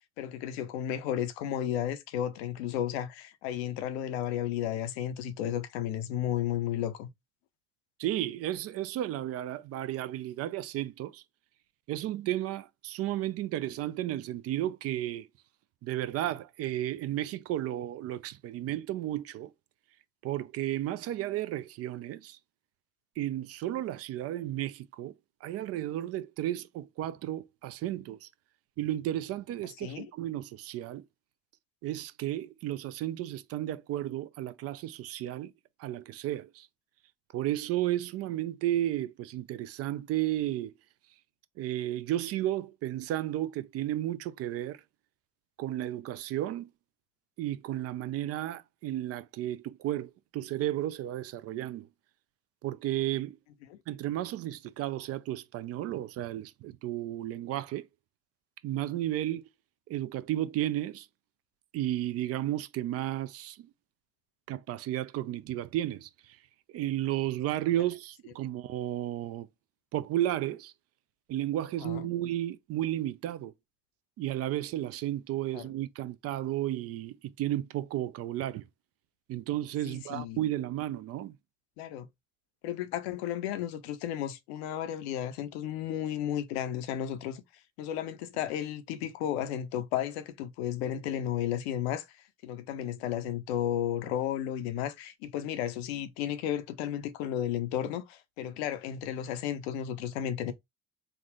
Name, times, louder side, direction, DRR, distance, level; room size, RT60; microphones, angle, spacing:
voice 1, 0.2-7.1 29.8-30.1 53.7-53.8 71.8-72.1 75.5-75.7 79.9-80.4 81.8-82.1 82.6-87.4 87.8-92.1 92.4-100.5, left 10 dB, 75° left, 0.6 m, -33 dB
voice 2, 8.0-11.2 11.9-15.3 15.8-19.5 20.2-22.4 23.2-25.1 25.4-28.3 28.8-31.0 31.8-35.5 35.8-36.7 37.3-40.7 41.6-44.8 45.6-46.7 47.4-51.9 52.6-53.4 53.9-57.9 58.6-59.5 59.9-61.1 61.7-63.7 64.5-66.4 66.7-69.5 69.9-70.7 71.3-73.5 74.2-78.7 79.3-81.3 98.4-98.5, right 13 dB, 50° right, 0.4 m, -33 dB
3.5 x 2.1 x 3.5 m
hypercardioid pair, 55°, 32 cm